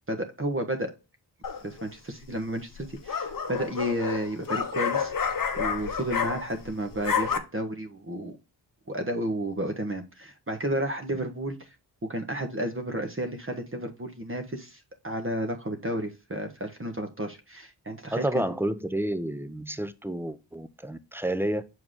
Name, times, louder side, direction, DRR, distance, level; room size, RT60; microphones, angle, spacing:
voice 1, 0.1-0.9 1.6-5.1 5.6-8.3 8.9-11.7 12.0-18.4, right 1 dB, 30° right, 1.2 m, -32 dB
sound 1, 1.4-1.9 2.8-6.7 6.9-7.4, left 6 dB, 50° left, 0.9 m, -29 dB
voice 2, 18.1-21.6, right 1 dB, 5° right, 0.7 m, -30 dB
6.3 x 4.6 x 3.6 m
cardioid pair, 45°, 44 cm